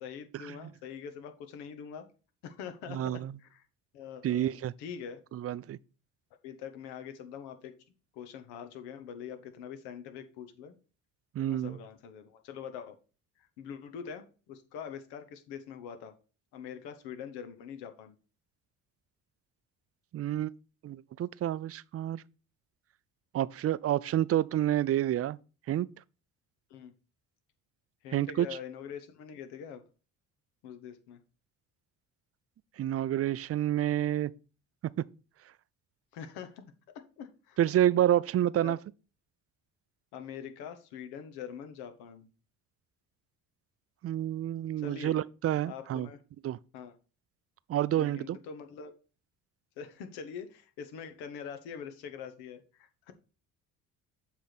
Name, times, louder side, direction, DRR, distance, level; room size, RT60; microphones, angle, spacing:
voice 1, 0.0-2.1 2.4-3.6 3.9-5.2 6.4-7.7 8.1-10.7 11.4-13.0 13.4-16.1 16.5-18.1 26.7-26.9 28.0-29.8 30.6-31.2 36.1-37.6 38.6-38.7 40.1-42.3 44.8-45.2 45.7-46.2 46.7-46.9 48.0-48.9 49.8-53.1, left 7 dB, 80° left, 1.1 m, -44 dB
voice 2, 2.9-3.3 4.2-4.7 5.3-5.8 11.4-11.8 20.1-20.5 20.8-22.2 23.3-25.4 25.7-25.9 28.1-28.5 32.8-34.3 37.6-38.8 44.0-46.1 46.4-46.6 47.7-48.4, right 12 dB, 40° right, 0.4 m, -28 dB
7.4 x 3.5 x 5.8 m
supercardioid pair, 65°, 39 cm